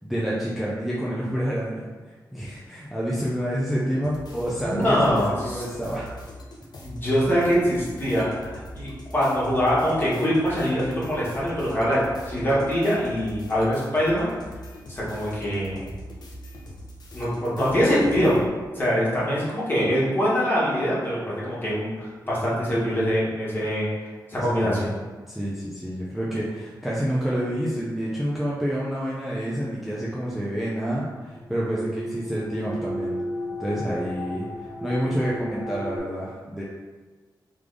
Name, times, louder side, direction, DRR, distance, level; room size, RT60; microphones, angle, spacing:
voice 1, 0.0-1.9 2.3-6.1 24.4-24.9 25.3-33.2 33.6-36.6, equal, ahead, -7 dB, 0.5 m, -28 dB
sound 1, 4.0-18.5, left 1 dB, 65° left, 0.7 m, -42 dB
voice 2, 4.6-5.6 6.8-12.0 12.3-14.3 14.9-15.8 17.1-18.4 18.7-23.9 24.3-24.9, equal, 30° left, -8 dB, 1.4 m, -23 dB
sound 2, 31.3-36.0, left 1 dB, 30° right, 1.2 m, -34 dB
3.7 x 3.4 x 3.3 m, 1.3 s
wide cardioid pair, 135°, 8 cm